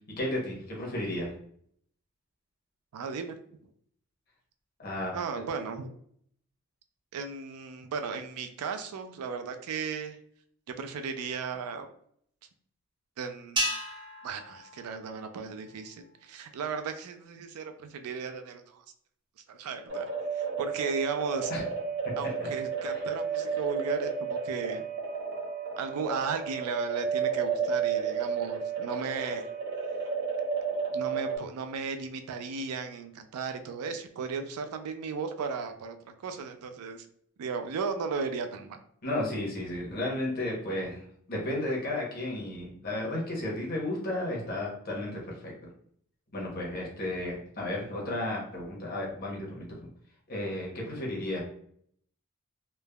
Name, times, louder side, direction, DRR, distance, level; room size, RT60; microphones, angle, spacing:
voice 1, 0.2-1.3 4.8-5.1 21.5-21.6 22.4-22.5 22.9-23.0 39.0-45.5 46.3-49.9 50.3-51.4, left 1 dB, 45° left, -2 dB, 0.8 m, -33 dB
voice 2, 2.9-3.4 5.1-6.0 7.1-10.2 10.8-11.9 13.2-13.7 14.2-18.8 19.5-21.5 22.2-24.8 25.8-29.5 30.9-36.0 36.2-37.1 37.4-38.8, right 5 dB, 90° right, 7 dB, 0.4 m, -35 dB
sound 1, 13.6-16.0, right 1 dB, 20° right, 0.4 m, -35 dB
sound 2, 19.9-31.4, right 6 dB, 55° right, 0.8 m, -32 dB
3.2 x 2.0 x 2.2 m, 0.65 s
head